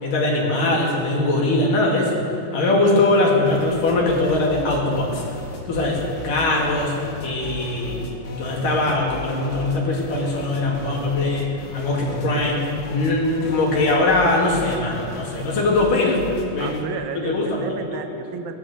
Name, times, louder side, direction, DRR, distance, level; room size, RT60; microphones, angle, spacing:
voice 1, 0.0-2.2 2.5-5.2 5.7-16.2 16.5-16.8 17.2-17.8, left 2 dB, 60° left, -3 dB, 3.9 m, -21 dB
sound 1, 3.5-16.9, left 2 dB, 85° left, 3.9 m, -36 dB
voice 2, 16.6-18.5, right 6 dB, 70° right, 6 dB, 1.9 m, -32 dB
18.0 x 10.5 x 7.9 m, 2.6 s
omnidirectional pair, 4.4 m